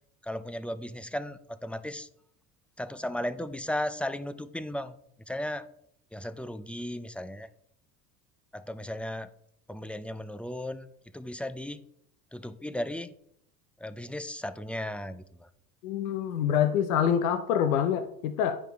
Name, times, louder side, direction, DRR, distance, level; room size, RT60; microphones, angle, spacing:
voice 1, 0.2-2.1 2.8-5.0 5.3-5.7 6.1-7.5 8.5-9.3 9.7-10.9 11.1-11.8 12.3-13.1 13.8-15.5, left 1 dB, 5° left, 13 dB, 0.4 m, -35 dB
voice 2, 15.8-18.6, left 8 dB, 85° left, 9 dB, 0.7 m, -26 dB
9.9 x 4.9 x 4.5 m, 0.72 s
hypercardioid pair, 80°, 41 cm